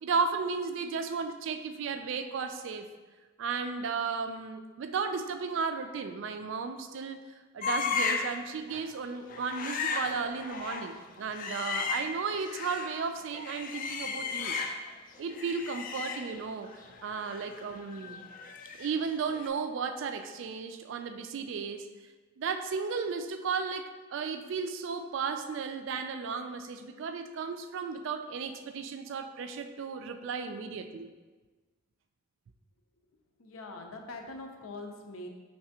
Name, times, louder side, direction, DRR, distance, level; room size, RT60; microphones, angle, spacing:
voice 1, 0.0-2.9 3.4-7.2 7.5-14.6 15.2-18.2 18.8-21.9 22.4-31.1, right 5 dB, 65° right, 8 dB, 0.3 m, -34 dB
sound 1, 7.6-8.4 8.7-8.9 9.3-13.0 13.3-15.0 15.3-19.1 19.3-19.5, left 5 dB, 40° left, 0.3 m, -35 dB
voice 2, 33.4-35.3, left 2 dB, 85° left, 3 dB, 0.6 m, -43 dB
5.8 x 3.3 x 2.8 m, 1.3 s
head